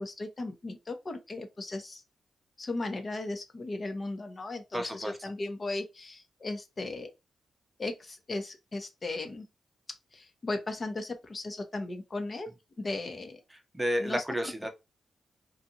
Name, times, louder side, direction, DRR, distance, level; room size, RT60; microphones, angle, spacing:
voice 1, 0.0-2.0 2.6-7.1 7.8-9.5 10.1-12.5 12.8-13.4 14.0-14.2, left 2 dB, 45° left, 0.8 m, -36 dB
voice 2, 4.7-5.1 13.7-14.7, equal, 15° right, 0.7 m, -31 dB
2.6 x 2.3 x 2.7 m
supercardioid pair, 40°, 0 cm